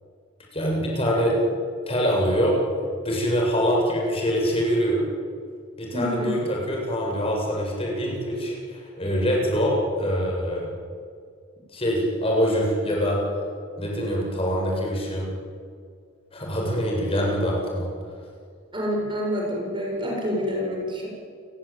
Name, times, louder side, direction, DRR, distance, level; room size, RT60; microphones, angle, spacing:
voice 1, 0.5-1.4 1.9-2.5 3.0-5.0 5.8-10.7 11.7-13.2 13.8-15.3 16.3-17.9, equal, 30° left, -2 dB, 7.6 m, -24 dB
voice 2, 5.9-6.4 18.7-21.1, equal, 25° right, -1 dB, 7.0 m, -27 dB
29.5 x 21.5 x 9.0 m, 2.2 s
head